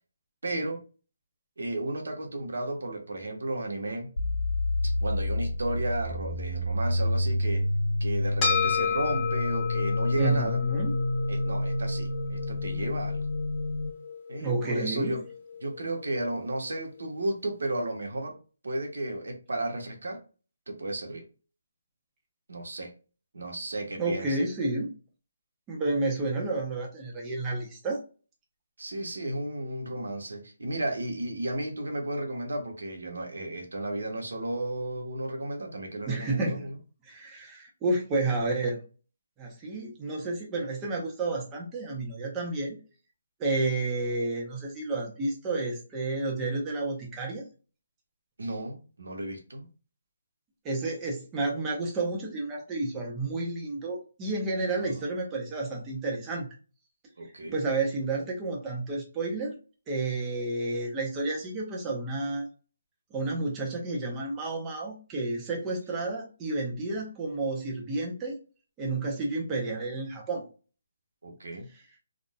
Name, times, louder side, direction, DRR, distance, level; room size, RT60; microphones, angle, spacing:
voice 1, 0.4-0.8 1.6-4.1 4.8-7.7 8.0-10.6 11.3-13.2 14.3-15.2 15.6-18.4 18.6-20.2 20.7-21.2 22.5-22.9 23.3-24.4 28.8-36.8 48.4-49.7 57.2-57.5 71.2-71.7, right 1 dB, 85° right, 1.0 m, -33 dB
sound 1, 4.2-13.9, left 1 dB, 85° left, 0.6 m, -29 dB
sound 2, 8.4-17.0, left 6 dB, 15° left, 1.5 m, -33 dB
voice 2, 10.2-10.9 14.4-15.2 24.0-24.9 25.7-28.0 36.0-36.7 37.0-38.8 39.4-42.8 43.4-47.4 50.6-56.5 57.5-59.5 59.9-62.5 63.1-68.4 68.8-70.5, right 2 dB, 10° right, 0.6 m, -31 dB
3.8 x 2.4 x 2.2 m
hypercardioid pair, 175°, 0 cm